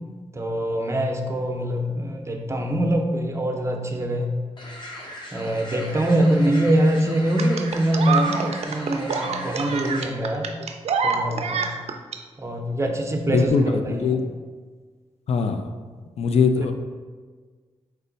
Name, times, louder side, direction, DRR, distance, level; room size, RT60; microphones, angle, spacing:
voice 1, 0.3-4.3 5.3-10.5 11.0-11.6 12.4-14.2, right 1 dB, 25° right, 3 dB, 0.6 m, -23 dB
sound 1, 4.6-10.1, left 1 dB, 45° left, 0.9 m, -39 dB
sound 2, 7.4-12.2 13.4-13.5, right 5 dB, 65° right, 0.4 m, -26 dB
voice 2, 13.3-14.2 15.3-15.6 16.2-16.7, left 5 dB, 65° left, 7 dB, 0.4 m, -21 dB
4.5 x 2.1 x 3.9 m, 1.5 s
cardioid pair, 55°, 12 cm